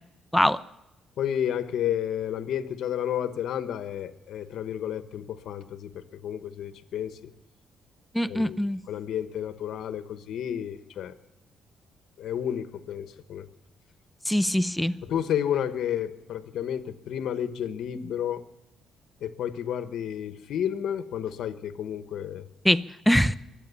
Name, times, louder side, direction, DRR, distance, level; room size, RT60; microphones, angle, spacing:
voice 1, 1.2-7.3 8.3-8.6 8.9-11.1 12.2-13.5 15.0-18.5 19.2-22.5, left 9 dB, 70° left, 11 dB, 1.1 m, -31 dB
voice 2, 8.1-8.8 14.3-14.9 22.6-23.4, equal, 5° left, 14 dB, 0.5 m, -23 dB
23.5 x 8.8 x 7.0 m, 0.88 s
cardioid pair, 120°, 0 cm